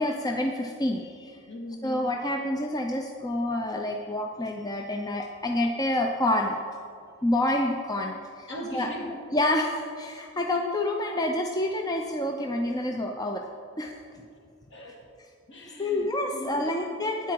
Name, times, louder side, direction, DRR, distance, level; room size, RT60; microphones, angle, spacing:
voice 1, 0.0-1.4 1.8-6.6 7.2-8.9 9.3-13.4 13.8-14.0 15.8-17.3, left 1 dB, 15° left, 2 dB, 0.5 m, -28 dB
voice 2, 1.5-2.1 8.5-9.1 14.7-15.0 15.5-16.9, left 1 dB, 55° left, -1 dB, 2.1 m, -39 dB
12.5 x 9.4 x 4.6 m, 2.3 s
head